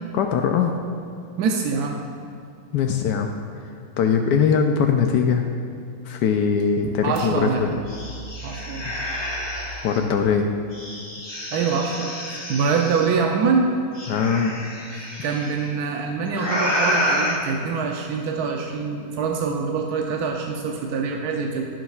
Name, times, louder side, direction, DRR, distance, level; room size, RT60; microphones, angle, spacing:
voice 1, 0.1-0.7 2.7-3.3 4.0-5.5 6.1-7.8 8.8-8.9 9.8-10.5 14.1-14.5, left 6 dB, 80° left, 4 dB, 1.2 m, -21 dB
voice 2, 1.4-2.0 6.8-7.6 8.4-8.9 11.5-13.8 15.2-21.7, right 5 dB, 70° right, 1 dB, 1.1 m, -24 dB
sound 1, 7.1-7.2 7.6-10.0 10.7-13.1 13.9-15.5 16.3-17.4, equal, 20° left, 0.9 m, -28 dB
15.0 x 6.4 x 2.4 m, 2.5 s
omnidirectional pair, 1.8 m